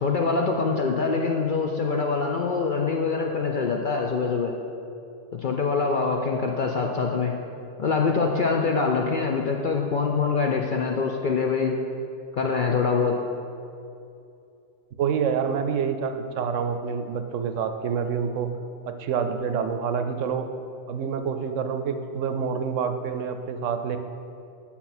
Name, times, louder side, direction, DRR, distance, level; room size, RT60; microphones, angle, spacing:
voice 1, 0.0-4.5 5.3-7.3 7.8-11.8 12.3-13.1, left 4 dB, 55° left, 1 dB, 0.5 m, -24 dB
voice 2, 15.0-18.5 18.9-20.5 20.9-24.0, right 6 dB, 75° right, 8 dB, 0.9 m, -27 dB
8.6 x 5.7 x 4.3 m, 2.5 s
omnidirectional pair, 1.3 m